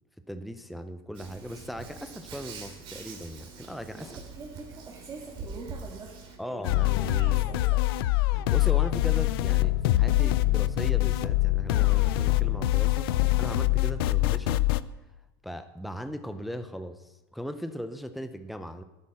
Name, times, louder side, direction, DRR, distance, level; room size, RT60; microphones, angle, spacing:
voice 1, 0.3-4.2 6.4-7.4 8.3-13.1 13.4-14.7 15.4-18.8, equal, ahead, 9 dB, 0.5 m, -38 dB
Hands, 1.1-6.4, right 4 dB, 45° right, 2.7 m, -44 dB
voice 2, 3.9-7.8, right 4 dB, 25° right, -1 dB, 1.8 m, -45 dB
sound 1, 6.6-14.8, left 17 dB, 75° left, 0.5 m, -24 dB
10.0 x 8.5 x 6.2 m, 1.1 s
supercardioid pair, 130°, 12 cm